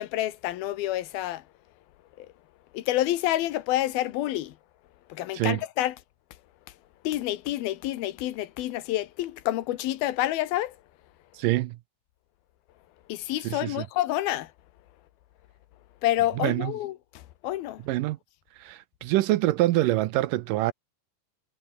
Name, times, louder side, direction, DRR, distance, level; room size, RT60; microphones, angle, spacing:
voice 1, 0.0-1.4 2.2-2.3 2.7-4.5 5.1-6.0 7.0-10.7 13.1-14.5 16.0-17.8, left 14 dB, 90° left, 3.1 m, -28 dB
voice 2, 11.3-11.8 13.4-13.9 16.4-16.7 17.9-18.2 18.6-20.7, right 16 dB, 75° right, 2.2 m, -25 dB
omnidirectional pair, 4.1 m